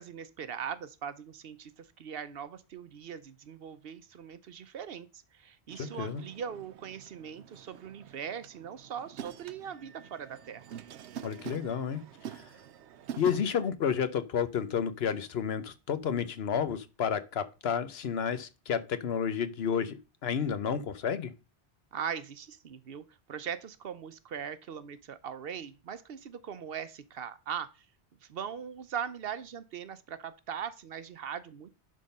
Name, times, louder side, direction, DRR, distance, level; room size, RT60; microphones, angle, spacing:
voice 1, 0.0-10.8 21.9-27.9 28.2-31.7, right 8 dB, 65° right, 0.8 m, -40 dB
sound 1, 5.7-13.7, right 9 dB, 90° right, 0.9 m, -46 dB
voice 2, 5.8-6.2 11.2-12.0 12.3-12.4 13.2-21.3, left 7 dB, 70° left, 1.0 m, -31 dB
11.0 x 3.8 x 5.3 m
omnidirectional pair, 1.1 m